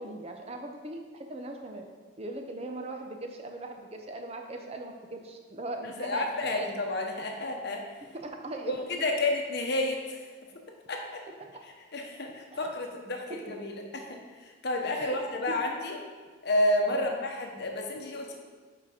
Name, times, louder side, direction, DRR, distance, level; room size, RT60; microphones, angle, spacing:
voice 1, 0.0-1.8 2.2-6.7 8.1-8.7 12.5-12.7 13.5-13.6 14.9-15.2 15.5-15.6 16.9-17.1, right 2 dB, 30° right, 3 dB, 0.5 m, -40 dB
voice 2, 6.0-7.8 8.7-10.2 10.9-11.2 11.9-16.0 16.4-18.3, left 1 dB, 55° left, 2 dB, 0.9 m, -30 dB
5.9 x 4.9 x 4.9 m, 1.5 s
head